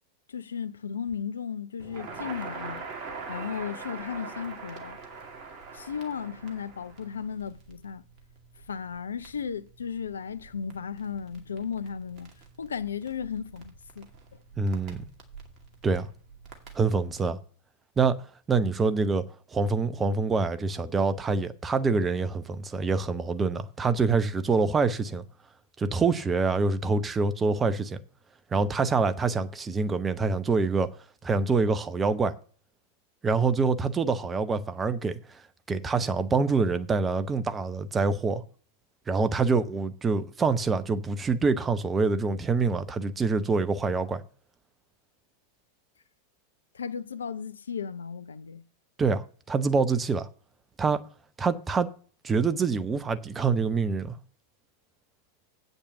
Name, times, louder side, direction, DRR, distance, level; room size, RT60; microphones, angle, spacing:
voice 1, 0.3-2.8 3.3-5.0 5.7-8.0 8.7-12.3 12.6-14.1 46.7-48.6, left 7 dB, 70° left, 0.5 m, -35 dB
Crackle, 1.8-17.3, right 4 dB, 40° right, 2.2 m, -44 dB
voice 2, 14.6-15.0 15.8-16.1 16.7-17.4 18.0-18.2 18.5-19.3 19.5-25.2 25.8-28.0 28.5-30.9 31.2-32.3 33.2-35.4 35.7-38.4 39.1-44.2 49.0-50.3 50.8-51.0 51.4-51.9 52.2-54.2, right 4 dB, 20° right, 0.8 m, -26 dB
8.5 x 5.4 x 6.9 m
figure-of-eight pair, 90°, 0 cm